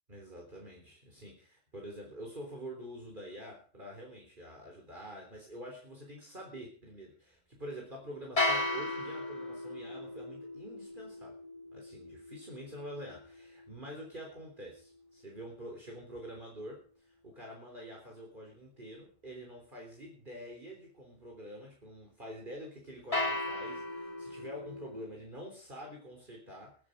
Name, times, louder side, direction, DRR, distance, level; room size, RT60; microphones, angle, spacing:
voice 1, 0.1-11.4 11.7-26.8, equal, 40° right, -1 dB, 3.8 m, -47 dB
sound 1, 8.4-14.5 23.1-25.0, left 2 dB, 25° left, 2.9 m, -36 dB
22.5 x 9.1 x 5.2 m, 0.41 s
omnidirectional pair, 1.3 m